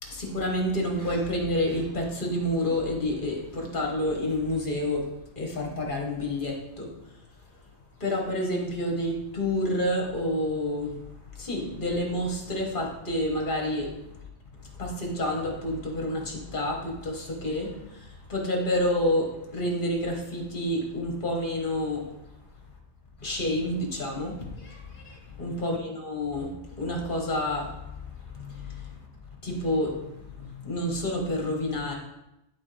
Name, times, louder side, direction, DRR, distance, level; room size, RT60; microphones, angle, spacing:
voice 1, 0.0-5.1 5.3-6.9 8.0-10.9 11.3-13.9 14.7-22.1 23.2-26.5 26.8-29.1 29.4-31.9, left 1 dB, 45° left, 0 dB, 1.7 m, -29 dB
11.5 x 4.2 x 3.4 m, 0.88 s
omnidirectional pair, 1.2 m